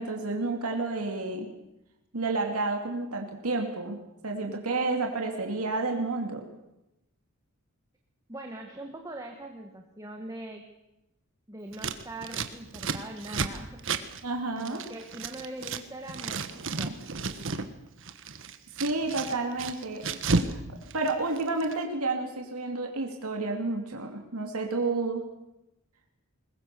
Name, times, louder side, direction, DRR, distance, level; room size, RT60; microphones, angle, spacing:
voice 1, 0.0-1.5 2.1-4.0 4.2-6.5 14.2-14.8 18.8-20.2 20.5-20.6 20.9-25.3, right 3 dB, 85° right, 3 dB, 2.7 m, -30 dB
voice 2, 8.3-10.7 11.5-13.8 14.5-17.0, right 1 dB, 15° right, 2 dB, 1.7 m, -42 dB
Scissors, 11.7-15.8 16.1-17.7 18.0-20.6 20.8-21.7, right 4 dB, 60° right, 1.4 m, -32 dB
22.0 x 20.5 x 6.9 m, 0.92 s
head